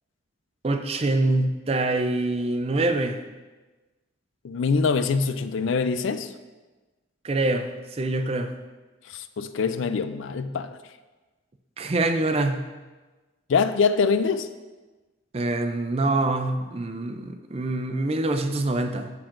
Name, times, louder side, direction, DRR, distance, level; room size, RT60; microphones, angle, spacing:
voice 1, 0.6-3.2 7.2-8.5 11.8-12.6 15.3-19.1, right 2 dB, 30° right, 0.4 m, -25 dB
voice 2, 4.4-6.3 9.1-10.8 13.5-14.5, left 5 dB, 70° left, 0.4 m, -24 dB
13.0 x 4.4 x 2.5 m
head